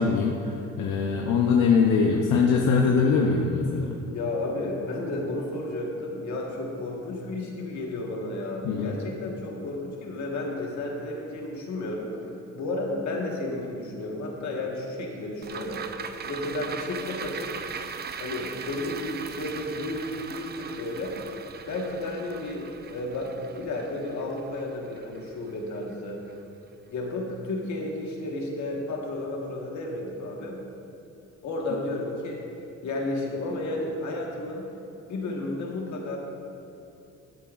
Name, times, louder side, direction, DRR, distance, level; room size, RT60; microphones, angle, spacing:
voice 1, 0.0-4.0 8.6-9.0, left 5 dB, 90° left, 0 dB, 0.7 m, -22 dB
voice 2, 4.1-12.2 12.5-15.9 16.3-17.5 18.2-21.2 21.7-26.2 26.9-30.6 31.4-32.4 32.8-34.6 35.1-36.2, left 2 dB, 70° left, 0 dB, 1.5 m, -32 dB
sound 1, 15.4-25.9 26.3-26.4, right 6 dB, 35° right, 0.4 m, -39 dB
12.0 x 8.3 x 2.5 m, 2.6 s
cardioid pair, 90°, 30 cm